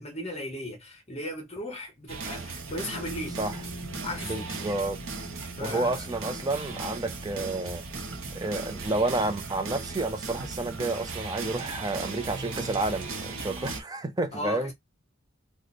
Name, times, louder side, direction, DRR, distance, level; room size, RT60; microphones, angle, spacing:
voice 1, 0.0-3.4 4.0-4.6 5.5-6.0 14.3-14.7, left 1 dB, 30° left, 1.1 m, -36 dB
sound 1, 2.1-13.8, right 4 dB, 75° right, 0.8 m, -37 dB
sound 2, 2.9-12.7, equal, 85° left, 0.5 m, -47 dB
voice 2, 4.2-5.0 5.6-7.8 8.3-14.7, right 2 dB, 20° right, 0.5 m, -30 dB
3.1 x 2.1 x 4.0 m
head